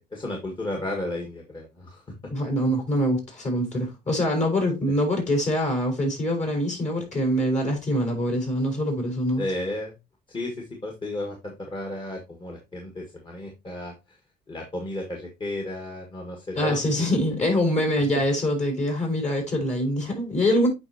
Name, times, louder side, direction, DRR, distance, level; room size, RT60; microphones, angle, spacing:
voice 1, 0.1-2.0 9.4-9.9 10.3-13.9 14.5-17.2, left 1 dB, 30° left, 1.8 m, -33 dB
voice 2, 2.3-9.4 16.6-20.7, equal, 45° left, 4.6 m, -24 dB
8.6 x 5.4 x 2.9 m
cardioid pair, 110°, 17 cm